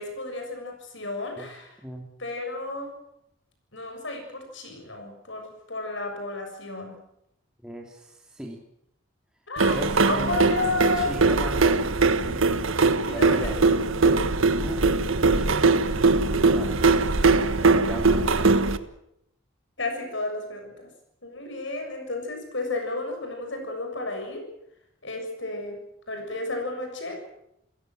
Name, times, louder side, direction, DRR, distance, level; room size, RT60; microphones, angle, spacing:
voice 1, 0.0-1.8 2.2-2.9 3.7-6.9 9.5-11.1 13.0-13.7 19.8-20.9 21.2-24.5 25.0-25.8 26.1-27.3, left 2 dB, 65° left, 4 dB, 7.1 m, -32 dB
voice 2, 7.6-8.6 9.7-10.3 10.9-12.5 13.0-13.7 14.0-14.2 14.6-14.9 15.2-16.8 17.4-18.7, equal, 5° right, 0 dB, 2.6 m, -39 dB
sound 1, 9.6-18.8, right 3 dB, 80° right, 1.4 m, -21 dB
29.5 x 16.5 x 7.7 m, 0.79 s
head